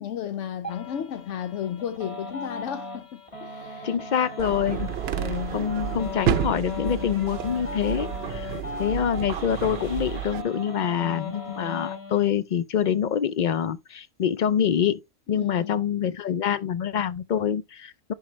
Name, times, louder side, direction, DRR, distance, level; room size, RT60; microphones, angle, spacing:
voice 1, 0.0-4.0 5.2-5.8 15.3-15.8, left 9 dB, 80° left, 1.0 m, -34 dB
sound 1, 0.6-12.3, left 3 dB, 25° left, 1.7 m, -38 dB
voice 2, 3.8-4.9 5.5-8.5 8.8-15.0 15.3-18.1, left 8 dB, 55° left, 0.5 m, -26 dB
sound 2, 4.4-10.4, right 10 dB, 65° right, 0.8 m, -30 dB
10.5 x 3.7 x 3.1 m
omnidirectional pair, 1.2 m